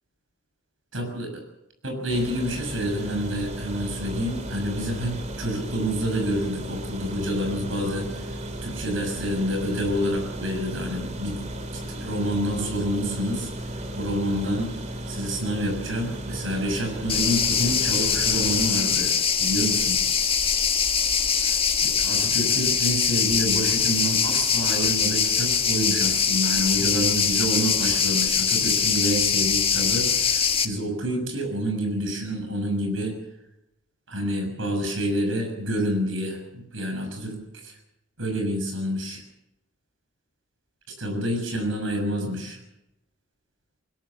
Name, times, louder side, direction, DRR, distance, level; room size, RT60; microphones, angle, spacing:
voice 1, 0.9-1.4 1.8-8.3 8.6-11.4 11.9-13.5 13.9-14.7 15.1-19.1 19.4-20.0 21.4-21.5 21.8-33.1 34.1-37.7 38.2-39.2 41.0-42.6, equal, 80° right, 4 dB, 6.5 m, -28 dB
sound 1, 2.1-18.7, right 1 dB, 35° right, 2.2 m, -35 dB
sound 2, 17.1-30.7, left 7 dB, 30° left, 1.5 m, -23 dB
20.5 x 20.5 x 7.1 m, 0.88 s
head